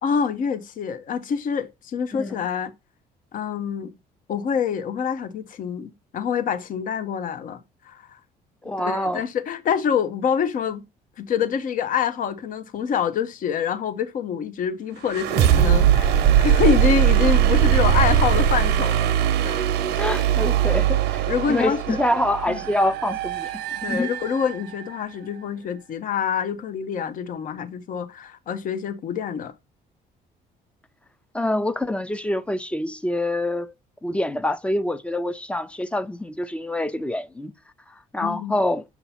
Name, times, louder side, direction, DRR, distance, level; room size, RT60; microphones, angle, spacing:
voice 1, 0.0-2.7 3.3-3.9 4.3-7.6 7.8-8.2 8.8-10.8 11.2-19.1 19.4-19.6 21.3-22.0 22.5-22.6 23.8-29.5 38.2-38.5, left 7 dB, 55° left, 0.8 m, -26 dB
voice 2, 2.1-2.4 8.6-9.2 20.0-23.6 23.9-24.1 31.3-33.7 34.0-37.5 38.1-38.8, left 1 dB, 5° left, 0.5 m, -26 dB
sound 1, 15.1-24.8, right 10 dB, 85° right, 0.7 m, -20 dB
6.9 x 2.8 x 5.6 m
cardioid pair, 110°, 17 cm